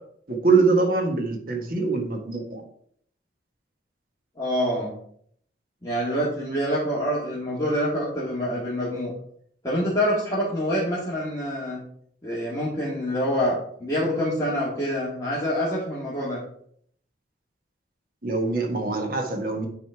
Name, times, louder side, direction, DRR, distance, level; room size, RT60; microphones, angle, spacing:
voice 1, 0.3-2.6 18.2-19.7, right 4 dB, 50° right, 4 dB, 1.5 m, -23 dB
voice 2, 4.4-4.9 5.8-9.1 9.6-11.8 12.2-16.4, equal, 20° left, -8 dB, 1.9 m, -26 dB
9.5 x 4.1 x 4.6 m, 0.64 s
head